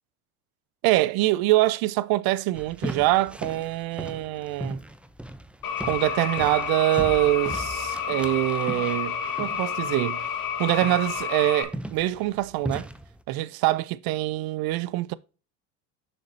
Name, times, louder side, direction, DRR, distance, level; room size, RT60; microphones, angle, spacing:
voice 1, 0.8-4.8 5.8-10.3 10.6-12.9 13.3-15.1, right 17 dB, 55° right, 0.6 m, -24 dB
sound 1, 2.5-13.2, right 1 dB, 5° right, 0.5 m, -38 dB
sound 2, 5.6-11.6, left 7 dB, 50° left, 2.0 m, -30 dB
6.6 x 6.5 x 2.7 m
hypercardioid pair, 80°, 45 cm